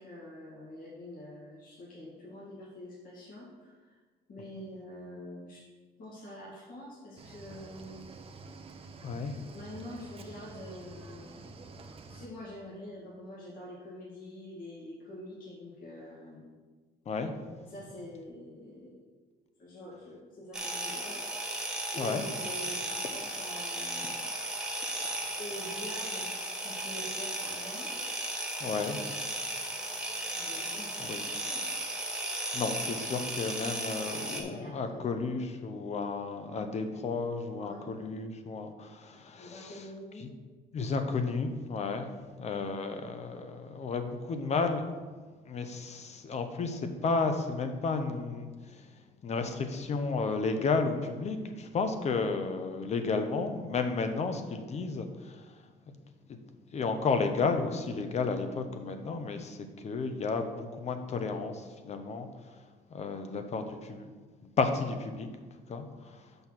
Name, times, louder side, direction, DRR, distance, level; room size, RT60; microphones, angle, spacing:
voice 1, 0.0-4.0 4.3-5.6 6.0-8.0 9.5-11.7 12.1-16.4 17.6-19.1 19.6-21.2 21.9-24.3 25.4-26.3 26.6-27.9 30.3-31.7 34.0-35.0 37.6-37.9 39.4-40.3, left 1 dB, 55° left, -6 dB, 2.3 m, -46 dB
Cricket / Waves surf, 7.2-12.3, right 3 dB, 35° right, 0.8 m, -48 dB
voice 2, 9.0-9.3 17.1-17.3 22.0-22.3 28.6-29.0 31.0-31.2 32.5-39.7 40.7-42.1 42.4-44.8 45.4-48.5 49.2-55.5 56.3-56.4 56.7-62.3 62.9-64.1 64.6-65.3 65.7-66.2, left 4 dB, 40° left, 7 dB, 0.8 m, -32 dB
sound 1, 20.5-34.4, right 1 dB, 5° right, 1.2 m, -35 dB
6.1 x 5.5 x 5.9 m, 1.4 s
cardioid pair, 110°, 17 cm